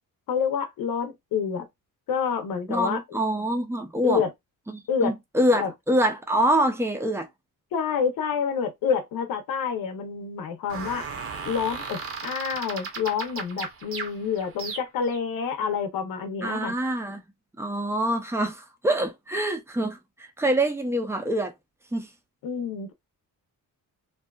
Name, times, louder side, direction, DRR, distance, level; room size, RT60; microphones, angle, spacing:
voice 1, 0.3-1.7 2.1-3.0 4.0-4.3 4.9-5.1 5.5-5.7 7.7-11.1 11.4-16.7 22.4-22.9, left 6 dB, 85° left, 0.7 m, -28 dB
voice 2, 2.7-4.2 4.7-7.3 16.4-17.2 17.6-21.5 21.9-22.1, right 1 dB, 10° right, 0.4 m, -25 dB
sound 1, 10.7-15.2, right 5 dB, 40° right, 0.7 m, -36 dB
2.7 x 2.3 x 2.2 m
wide cardioid pair, 170°, 34 cm